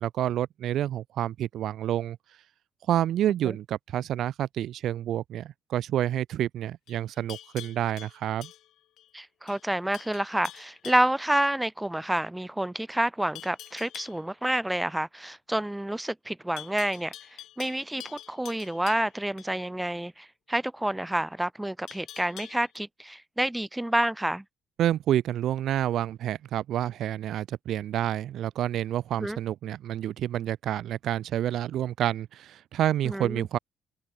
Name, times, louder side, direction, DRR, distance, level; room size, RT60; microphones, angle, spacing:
voice 1, 0.0-2.2 2.9-8.5 24.8-33.6, right 11 dB, 75° right, 1.7 m, -28 dB
Livestock farm animals working animals, 6.9-9.1 9.5-9.7 9.9-11.2 13.4-14.2 16.6-19.5 21.9-22.8, left 13 dB, 80° left, 7.7 m, -46 dB
voice 2, 9.1-17.1 17.6-24.4 29.2-29.4 33.0-33.5, right 1 dB, 10° right, 2.1 m, -29 dB
cardioid pair, 85°, 0 cm